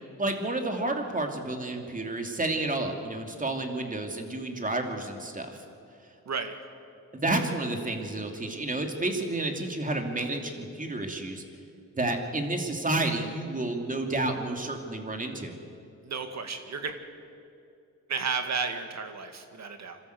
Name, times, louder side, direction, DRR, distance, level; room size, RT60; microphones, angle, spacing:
voice 1, 0.2-5.6 7.1-11.4 11.9-15.5, right 2 dB, 25° right, 4 dB, 2.8 m, -30 dB
voice 2, 16.0-16.9 18.1-20.0, right 5 dB, 60° right, 7 dB, 2.1 m, -32 dB
26.0 x 13.5 x 8.0 m, 2.6 s
cardioid pair, 80°, 31 cm